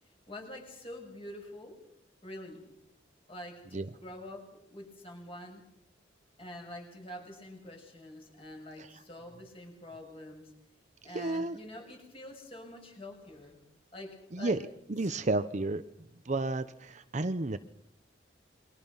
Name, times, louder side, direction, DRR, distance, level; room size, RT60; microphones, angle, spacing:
voice 1, 0.3-1.8 2.2-2.7 3.3-5.6 6.4-10.5 11.0-13.6 13.9-14.6 15.0-15.2, left 1 dB, 30° left, 2 dB, 7.3 m, -46 dB
voice 2, 11.1-11.6 14.3-14.6 14.9-15.8 16.3-17.6, right 2 dB, 40° right, 11 dB, 0.8 m, -31 dB
28.5 x 23.5 x 5.6 m, 0.78 s
head